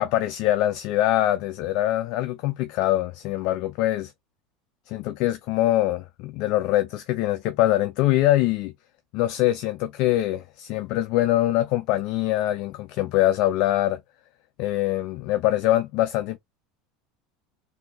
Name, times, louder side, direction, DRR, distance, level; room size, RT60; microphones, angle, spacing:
voice 1, 0.0-4.1 4.9-8.7 9.1-14.0 14.6-16.4, left 14 dB, 60° left, 0.5 m, -23 dB
3.6 x 2.7 x 2.3 m
supercardioid pair, 115°, 0 cm